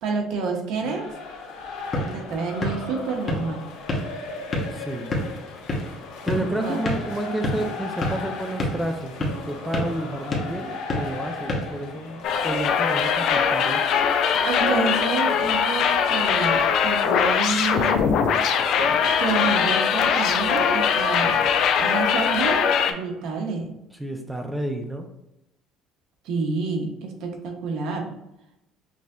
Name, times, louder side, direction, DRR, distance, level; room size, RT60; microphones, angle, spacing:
voice 1, 0.0-1.1 1.9-3.6 6.6-6.8 14.5-18.2 19.2-21.4 21.8-23.7 26.2-28.1, right 4 dB, 70° right, 2 dB, 0.9 m, -28 dB
sound 1, 0.8-17.0, left 4 dB, 80° left, 0.7 m, -37 dB
sound 2, 1.6-12.4, left 1 dB, 35° left, 1.0 m, -31 dB
voice 2, 4.7-5.1 6.2-13.8 24.0-25.1, right 1 dB, 5° right, 4 dB, 0.4 m, -30 dB
sound 3, 12.2-22.9, left 7 dB, 65° left, 0.4 m, -21 dB
6.0 x 2.6 x 2.3 m, 0.88 s
cardioid pair, 110°, 0 cm